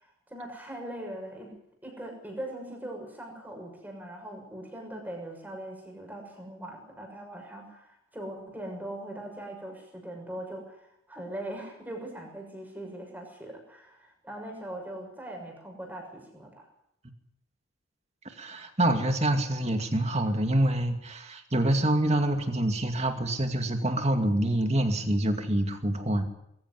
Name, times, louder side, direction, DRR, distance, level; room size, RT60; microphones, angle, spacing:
voice 1, 0.0-1.5 1.8-16.7, right 1 dB, 10° right, 2 dB, 6.5 m, -41 dB
voice 2, 18.4-26.2, right 1 dB, 30° right, 5 dB, 2.4 m, -26 dB
22.5 x 15.0 x 9.6 m, 0.78 s
head